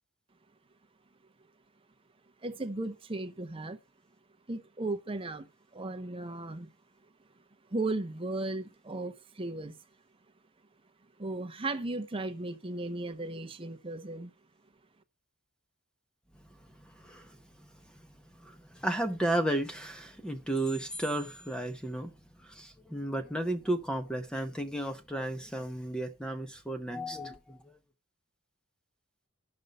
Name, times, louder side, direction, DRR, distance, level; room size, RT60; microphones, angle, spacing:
voice 1, 2.4-3.8 4.5-5.5 5.7-6.7 7.7-9.7 11.2-14.3, right 2 dB, 25° right, 0.8 m, -36 dB
voice 2, 16.8-17.7 18.4-22.1 22.4-27.7, right 1 dB, 5° left, 0.8 m, -34 dB
10.5 x 5.5 x 5.3 m
head